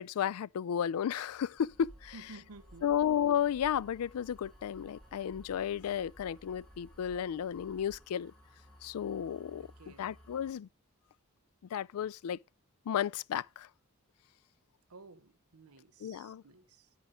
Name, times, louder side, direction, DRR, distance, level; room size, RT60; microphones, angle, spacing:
voice 1, 0.0-2.1 2.8-8.3 8.8-9.7 10.0-10.7 11.7-12.4 12.9-13.7 16.0-16.4, left 9 dB, 85° left, 0.3 m, -33 dB
sound 1, 1.1-10.5, left 1 dB, 5° left, 1.8 m, -61 dB
sound 2, 1.6-8.0, equal, 25° left, 3.2 m, -57 dB
voice 2, 2.1-2.9 9.6-10.1 14.9-16.9, right 3 dB, 85° right, 0.8 m, -54 dB
9.9 x 4.6 x 5.0 m
head